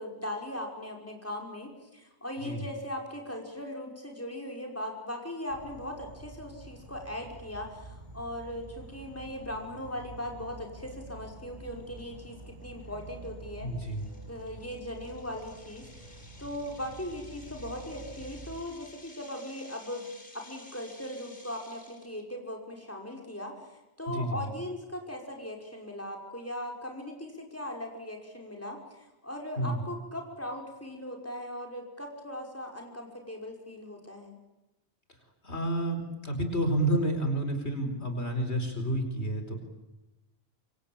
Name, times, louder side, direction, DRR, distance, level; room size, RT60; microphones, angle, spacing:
voice 1, 0.0-13.7 14.3-15.9 16.4-20.1 20.3-23.5 24.0-34.4, left 1 dB, 15° left, 1 dB, 5.5 m, -39 dB
Insect / Frog, 5.5-18.6, right 2 dB, 45° right, 6.9 m, -48 dB
sound 1, 12.0-12.1 12.6-12.8 13.2-13.3 13.9-22.2, left 1 dB, 50° left, 4.7 m, -54 dB
voice 2, 13.6-14.0 24.1-24.4 29.6-29.8 35.4-39.6, right 1 dB, 75° left, 6 dB, 4.9 m, -30 dB
27.0 x 25.0 x 8.9 m, 0.99 s
omnidirectional pair, 1.1 m